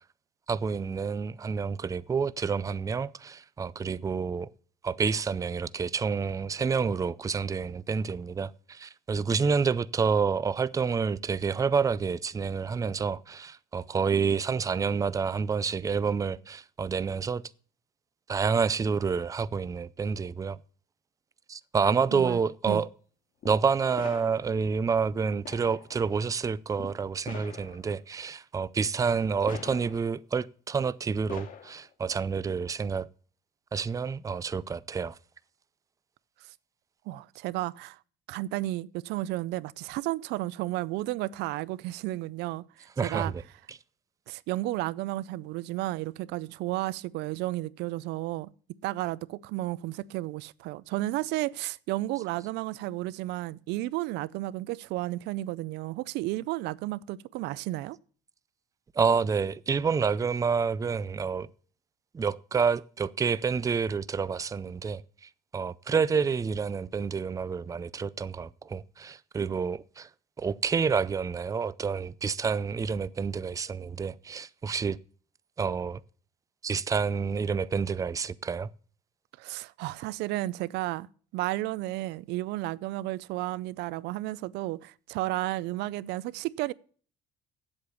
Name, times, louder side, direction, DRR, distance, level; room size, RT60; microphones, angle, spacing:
voice 1, 0.5-4.5 4.8-17.4 18.3-20.6 21.5-22.9 23.4-33.1 33.7-35.2 43.0-43.4 43.7-43.8 52.2-52.3 59.0-61.5 62.1-65.0 65.5-70.1 70.4-75.0 75.6-76.0 76.6-78.7, right 5 dB, 20° right, 0.4 m, -28 dB
sound 1, 23.4-23.6 23.9-24.7 25.4-26.0 26.7-26.9 27.2-28.0 29.5-30.2 31.3-31.9, left 7 dB, 50° left, 2.3 m, -44 dB
voice 2, 37.1-38.0 38.3-43.3 44.3-48.5 48.8-58.0 79.4-81.1 81.3-86.7, right 17 dB, 90° right, 0.4 m, -33 dB
8.6 x 8.0 x 6.8 m
cardioid pair, 110°, 17 cm